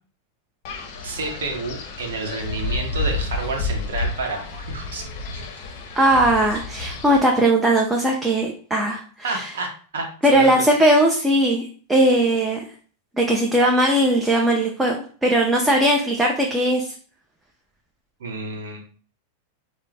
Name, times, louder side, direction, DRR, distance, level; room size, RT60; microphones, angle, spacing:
Wind, 0.6-7.2, left 2 dB, 55° left, 0.6 m, -30 dB
voice 1, 1.0-5.0 5.3-5.4 9.2-10.6 18.2-18.8, right 2 dB, 80° right, 2 dB, 0.8 m, -30 dB
voice 2, 6.0-9.5 10.2-12.6 13.2-15.0 15.2-16.9, right 1 dB, 10° right, 0 dB, 0.5 m, -19 dB
2.4 x 2.1 x 3.2 m, 0.43 s
hypercardioid pair, 105°, 0 cm